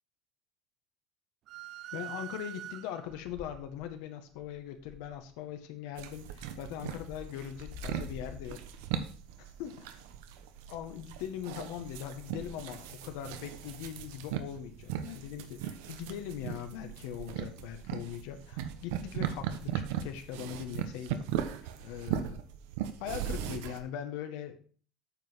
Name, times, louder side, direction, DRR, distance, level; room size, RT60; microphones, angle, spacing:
sound 1, 1.5-3.3, right 13 dB, 45° right, 0.5 m, -44 dB
voice 1, 1.9-8.6 9.6-9.7 10.7-21.3 21.8-22.4 23.0-24.5, left 10 dB, 75° left, 7 dB, 1.4 m, -41 dB
sound 2, 3.2-4.0 4.3-5.3 5.9-6.4 6.7-9.2 12.2-13.3 14.4-14.7 15.0-15.4 16.5-16.6, left 3 dB, 40° left, 2.0 m, -49 dB
sound 3, 6.0-23.8, right 9 dB, 90° right, 1.0 m, -38 dB
9.1 x 5.5 x 5.7 m, 0.43 s
cardioid pair, 160°, 0 cm